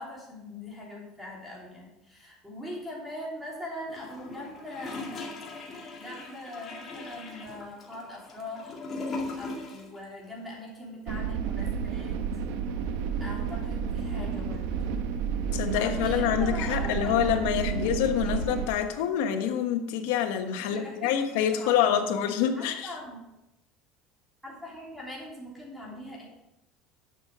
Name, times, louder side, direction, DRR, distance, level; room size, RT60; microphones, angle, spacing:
voice 1, 0.0-5.3 5.7-8.8 9.4-12.2 13.2-15.0 15.7-18.4 20.6-22.1 22.6-23.2 24.4-26.2, left 1 dB, ahead, -4 dB, 3.2 m, -42 dB
Gurgling / Toilet flush, 3.9-10.0 10.2-10.3, left 3 dB, 25° left, 2.3 m, -39 dB
sound 1, 11.1-18.7, right 6 dB, 80° right, 1.0 m, -31 dB
voice 2, 15.5-22.9, left 9 dB, 85° left, 6 dB, 1.3 m, -26 dB
11.0 x 7.1 x 5.0 m, 0.93 s
cardioid pair, 165°, 0 cm